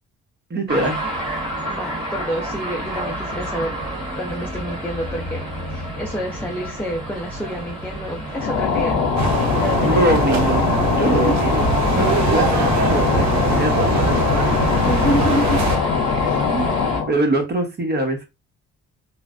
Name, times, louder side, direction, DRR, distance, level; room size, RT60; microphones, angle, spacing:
voice 1, 0.5-1.0 9.8-14.3 16.5-16.8 17.1-18.3, right 1 dB, 35° right, 4 dB, 1.0 m, -23 dB
sound 1, 0.7-17.0, equal, 15° right, 1.6 m, -30 dB
voice 2, 1.7-3.7 4.2-10.0 11.0-11.2 14.8-15.6 16.3-16.5, equal, 5° left, -1 dB, 0.6 m, -28 dB
sound 2, 8.3-17.2, left 5 dB, 75° left, 0.7 m, -21 dB
sound 3, 9.2-15.8, right 5 dB, 65° right, 0.7 m, -23 dB
3.1 x 2.1 x 2.5 m, 0.24 s
cardioid pair, 90°, 30 cm